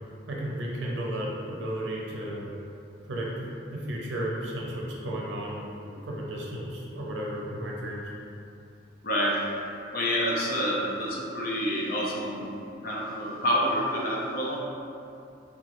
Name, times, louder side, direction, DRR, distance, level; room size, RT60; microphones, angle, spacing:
voice 1, 0.3-2.4 3.1-8.1, right 1 dB, 75° right, -3 dB, 0.5 m, -34 dB
voice 2, 9.0-9.4 9.9-12.4 12.8-14.6, equal, 50° left, -4 dB, 0.5 m, -28 dB
2.9 x 2.2 x 2.9 m, 2.6 s
head